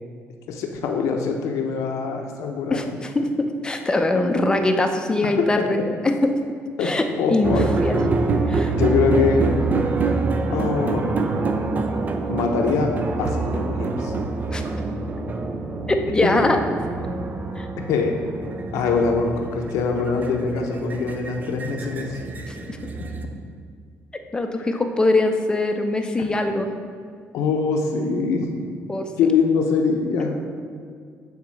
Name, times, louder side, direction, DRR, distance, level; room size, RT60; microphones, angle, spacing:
voice 1, 0.5-3.0 6.8-6.9 7.2-7.7 8.7-9.4 10.5-11.0 12.3-12.9 13.2-14.1 17.9-18.1 18.7-22.2 27.3-28.6 29.2-30.4, left 5 dB, 85° left, 3 dB, 0.7 m, -23 dB
voice 2, 2.7-5.8 6.0-6.1 6.8-8.0 8.5-8.7 14.5-14.6 15.9-16.6 17.6-17.7 22.5-22.8 24.3-26.7 28.9-29.1, left 2 dB, 15° left, 5 dB, 0.6 m, -22 dB
sound 1, 7.4-23.2, right 3 dB, 35° right, 0.6 m, -26 dB
7.3 x 3.6 x 6.3 m, 2.1 s
cardioid pair, 120°, 5 cm